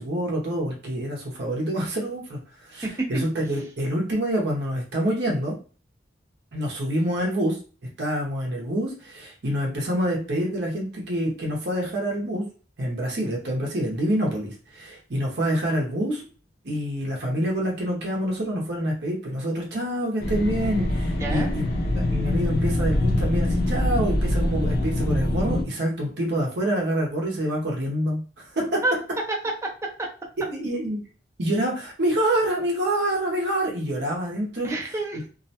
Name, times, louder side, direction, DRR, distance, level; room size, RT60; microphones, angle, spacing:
voice 1, 0.0-5.5 6.5-7.6 8.0-12.4 12.8-16.2 16.6-21.7 21.9-28.8 30.5-31.0 31.4-34.7, right 1 dB, 60° right, -2 dB, 0.7 m, -26 dB
voice 2, 2.8-3.2 21.2-21.5 28.8-28.9 29.3-30.1 34.6-35.3, right 2 dB, 15° right, -1 dB, 0.5 m, -28 dB
sound 1, 20.2-25.6, left 1 dB, 55° left, 0.4 m, -24 dB
2.4 x 2.1 x 2.7 m, 0.37 s
head